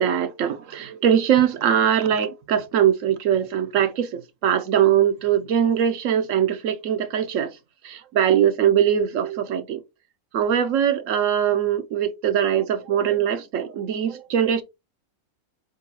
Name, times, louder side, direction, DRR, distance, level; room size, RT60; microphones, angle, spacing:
voice 1, 0.0-7.5 7.8-9.8 10.3-14.6, right 9 dB, 70° right, 0.9 m, -21 dB
4.6 x 3.8 x 2.8 m
omnidirectional pair, 1.5 m